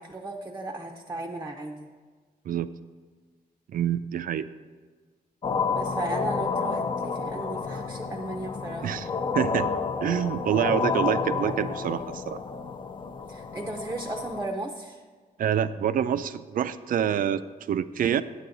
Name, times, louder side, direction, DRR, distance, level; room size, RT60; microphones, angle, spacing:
voice 1, 0.0-1.9 5.7-8.9 13.3-15.0, right 2 dB, 15° right, 3 dB, 0.6 m, -35 dB
voice 2, 3.7-4.5 8.8-9.7 10.0-12.4 15.4-18.2, right 9 dB, 65° right, 14 dB, 0.4 m, -27 dB
sound 1, 5.4-14.5, left 5 dB, 35° left, 0.5 m, -30 dB
9.4 x 8.3 x 3.9 m, 1.5 s
wide cardioid pair, 140°, 15 cm